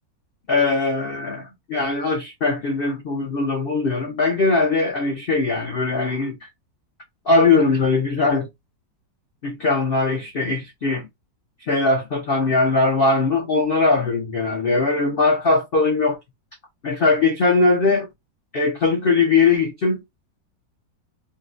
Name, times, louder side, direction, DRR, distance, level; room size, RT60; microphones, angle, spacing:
voice 1, 0.5-6.4 7.3-8.5 9.4-11.1 11.7-16.2 16.8-18.1 18.5-20.0, left 3 dB, 85° left, 0.5 m, -20 dB
3.7 x 2.0 x 2.5 m
omnidirectional pair, 2.0 m